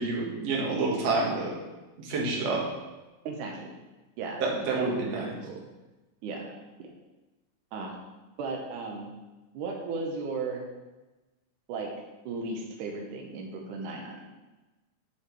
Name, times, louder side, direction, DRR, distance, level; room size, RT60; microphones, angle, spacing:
voice 1, 0.0-1.5 2.0-2.6 4.4-5.3, right 3 dB, 55° right, -2 dB, 2.2 m, -28 dB
voice 2, 3.2-3.7 4.2-4.4 4.7-5.7 6.2-6.4 7.7-7.9 8.4-9.1 9.5-10.6 11.7-11.9 12.3-14.1, right 4 dB, 70° right, 0 dB, 2.1 m, -35 dB
8.6 x 5.6 x 4.6 m, 1.1 s
omnidirectional pair, 4.4 m